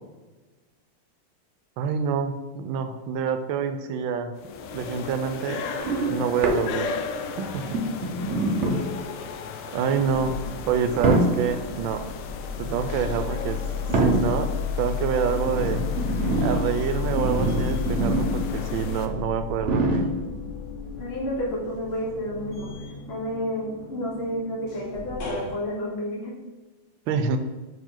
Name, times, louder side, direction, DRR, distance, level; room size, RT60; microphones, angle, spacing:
voice 1, 1.8-4.3 4.7-5.6 6.1-6.9 7.4-7.8 9.7-10.3 10.7-12.0 12.6-13.6 14.0-14.5 14.8-15.8 16.4-20.1 27.1-27.4, right 7 dB, 80° right, 8 dB, 1.3 m, -27 dB
sound 1, 4.4-19.1, left 5 dB, 85° left, 1.5 m, -36 dB
sound 2, 5.8-7.1 7.6-9.1 9.9-10.2 11.0-11.7 12.9-13.2 13.9-14.6 15.3-18.6 18.8-18.9 19.6-20.4 21.2-21.3, right 2 dB, 60° right, 0.7 m, -26 dB
sound 3, 9.6-25.5, left 6 dB, 60° left, 1.9 m, -33 dB
voice 2, 21.0-26.3, equal, 35° left, -2 dB, 1.4 m, -31 dB
5.6 x 5.0 x 3.8 m, 1.2 s
omnidirectional pair, 2.3 m